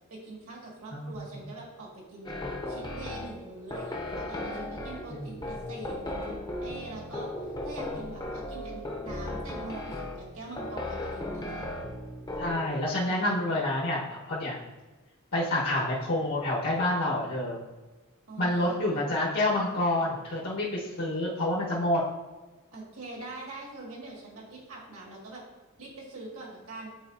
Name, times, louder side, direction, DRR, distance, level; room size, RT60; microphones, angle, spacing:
voice 1, 0.1-2.4 2.7-7.3 7.6-11.6 18.3-18.8 22.7-25.4 25.8-26.9, right 2 dB, 70° right, -3 dB, 1.9 m, -43 dB
voice 2, 0.9-1.4 5.1-5.3 12.4-14.6 15.3-17.6 18.4-22.0, left 1 dB, 80° left, -6 dB, 1.3 m, -28 dB
sound 1, 2.2-12.7, left 1 dB, 20° left, 0.6 m, -36 dB
8.8 x 4.0 x 2.6 m, 1.2 s
head